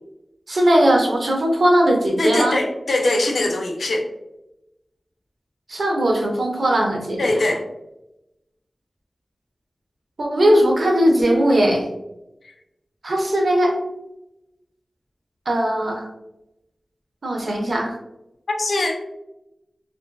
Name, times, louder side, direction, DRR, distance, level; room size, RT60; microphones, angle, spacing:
voice 1, 0.5-2.6 5.7-7.3 10.2-11.9 13.0-13.7 15.5-16.1 17.2-17.9, right 1 dB, 70° right, 0 dB, 0.6 m, -18 dB
voice 2, 2.2-4.1 7.2-7.6 18.6-19.0, left 2 dB, 85° left, 1 dB, 0.4 m, -21 dB
2.5 x 2.3 x 2.2 m, 0.91 s
wide cardioid pair, 70°, 0 cm